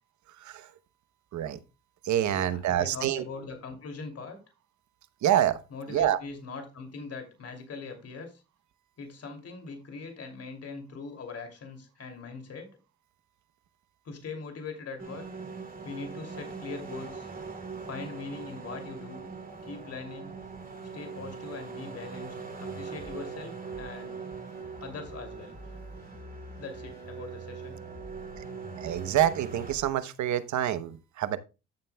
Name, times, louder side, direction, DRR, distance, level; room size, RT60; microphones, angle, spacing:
voice 1, 0.4-0.7 1.3-1.6 2.0-3.2 5.2-5.6 5.9-6.2 28.8-31.4, right 11 dB, 70° right, 0.9 m, -27 dB
voice 2, 2.3-4.4 5.7-8.4 9.0-12.8 14.0-15.3 15.8-17.3 17.8-19.2 19.6-20.3 20.9-22.3 22.6-24.2 24.8-25.6 26.5-27.8, left 4 dB, 55° left, 2.7 m, -41 dB
sound 1, 15.0-29.7, right 5 dB, 30° right, 2.6 m, -41 dB
sound 2, 20.4-29.9, equal, 10° left, 3.9 m, -49 dB
13.0 x 7.5 x 2.3 m
cardioid pair, 90°, 30 cm